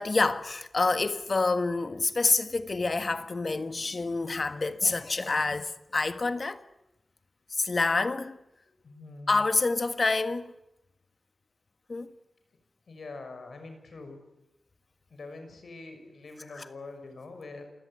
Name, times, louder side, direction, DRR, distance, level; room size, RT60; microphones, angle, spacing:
voice 1, 0.0-6.6 7.5-8.4 9.3-10.5 11.9-12.1 16.5-16.6, left 3 dB, 50° left, 1.5 m, -27 dB
voice 2, 8.8-9.4 12.9-14.2 15.1-17.7, left 3 dB, 80° left, 6.0 m, -44 dB
28.0 x 16.5 x 9.8 m
wide cardioid pair, 75°, 0 cm